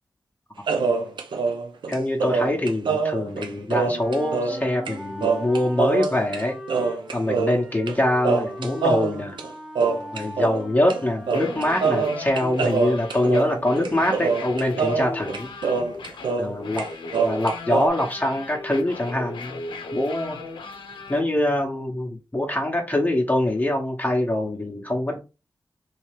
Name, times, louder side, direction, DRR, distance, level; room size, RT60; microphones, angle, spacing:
sound 1, 0.7-4.6 4.9-5.0 5.2-6.4 6.7-8.0 8.2-10.6 10.9-11.0 11.3-16.5 16.8-17.9, right 4 dB, 80° right, 0.6 m, -24 dB
voice 1, 1.9-6.6 7.1-9.4 10.1-15.5 16.4-16.8 17.2-19.6 19.9-20.4 21.1-25.2, left 1 dB, 20° left, 0.9 m, -24 dB
Wind instrument woodwind instrument, 3.9-12.1, equal, 10° right, 0.7 m, -40 dB
sound 2, 11.2-21.2, left 3 dB, 90° left, 0.6 m, -36 dB
3.2 x 2.8 x 3.3 m
cardioid pair, 40°, 8 cm